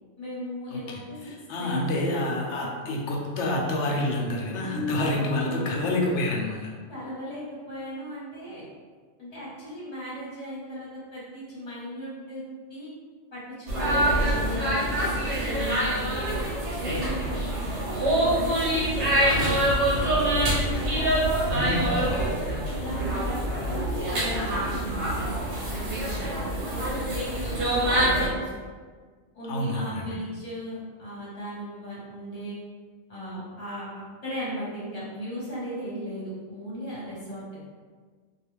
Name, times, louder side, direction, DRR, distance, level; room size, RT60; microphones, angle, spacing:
voice 1, 0.2-1.3 1.6-2.1 4.6-5.8 6.5-8.6 9.2-12.4 12.7-12.9 13.3-13.4 13.7-16.2 16.7-20.6 21.4-22.0 22.7-28.5 29.3-32.6 33.1-33.9 34.2-37.4, equal, 35° left, -8 dB, 1.0 m, -37 dB
voice 2, 0.7-6.7 21.5-22.3 29.5-30.2, left 1 dB, 85° left, -1 dB, 0.9 m, -28 dB
sound 1, 13.7-28.3, right 1 dB, 85° right, 1.1 m, -25 dB
2.4 x 2.3 x 3.1 m, 1.6 s
omnidirectional pair, 1.2 m